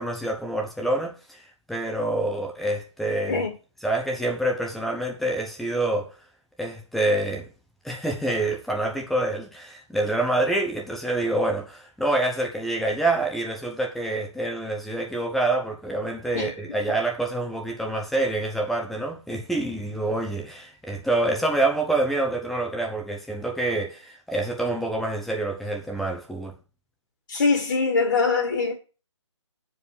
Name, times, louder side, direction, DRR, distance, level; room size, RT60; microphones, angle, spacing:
voice 1, 0.0-3.4 3.8-6.2 6.6-7.5 7.8-26.5, right 2 dB, ahead, 0.8 m, -27 dB
voice 2, 27.3-28.7, left 4 dB, 45° left, 1.9 m, -22 dB
9.2 x 4.9 x 7.3 m
figure-of-eight pair, 145°, 16 cm